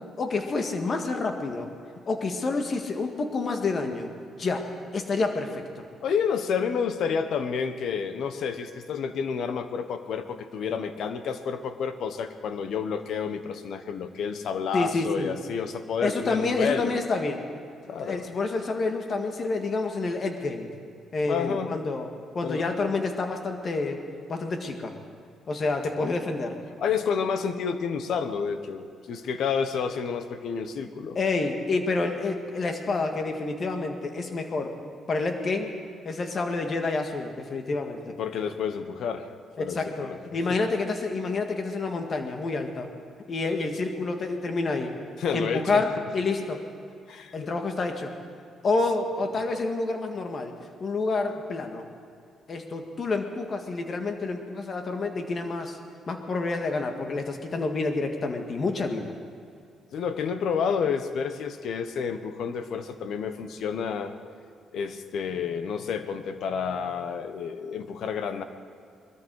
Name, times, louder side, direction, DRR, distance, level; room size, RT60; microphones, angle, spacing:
voice 1, 0.2-1.7 2.1-4.1 4.4-5.6 14.7-15.4 16.0-17.5 18.0-20.7 21.1-22.1 22.3-24.0 24.3-24.9 25.5-26.6 31.2-34.7 35.1-35.7 36.1-38.1 39.6-42.9 43.3-45.0 45.3-46.6 47.3-48.1 48.6-50.5 50.8-51.8 52.5-55.8 56.1-59.1, left 3 dB, 45° left, 5 dB, 1.8 m, -28 dB
voice 2, 6.0-17.0 17.8-18.3 21.2-21.7 22.4-22.6 26.8-31.2 38.1-39.3 39.6-40.2 45.2-45.8 47.1-47.5 59.9-64.1 64.7-68.4, left 6 dB, 70° left, 10 dB, 1.1 m, -30 dB
21.5 x 13.0 x 4.8 m, 2.4 s
cardioid pair, 90°, 0 cm